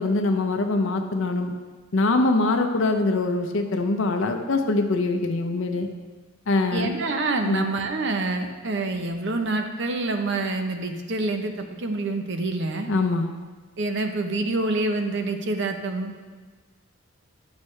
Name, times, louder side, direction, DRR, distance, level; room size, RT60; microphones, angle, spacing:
voice 1, 0.0-1.5 1.9-5.9 6.5-6.9 7.4-7.6 12.9-13.3, left 2 dB, 70° left, 5 dB, 0.6 m, -23 dB
voice 2, 6.7-12.9 13.8-16.1, right 2 dB, 60° right, 5 dB, 0.7 m, -27 dB
11.5 x 6.3 x 3.2 m, 1.5 s
head